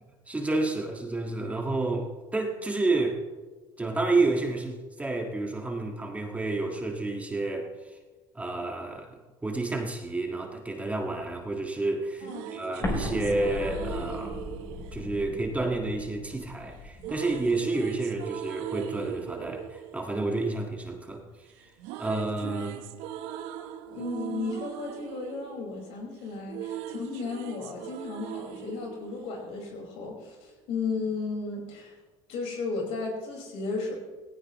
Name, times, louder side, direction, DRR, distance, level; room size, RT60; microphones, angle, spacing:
voice 1, 0.3-3.2 3.8-8.0 8.4-14.4 14.9-21.2 22.0-22.8, right 2 dB, 15° right, 2 dB, 1.8 m, -30 dB
sound 1, 12.0-16.1 17.0-21.2 21.5-30.0, right 11 dB, 85° right, 0.9 m, -40 dB
voice 2, 12.2-12.5 23.9-32.0 32.3-33.9, left 4 dB, 70° left, 0 dB, 5.1 m, -34 dB
Explosion, 12.8-17.6, left 3 dB, 25° left, 3.2 m, -37 dB
18.0 x 16.5 x 3.1 m, 1.3 s
cardioid pair, 110°, 11 cm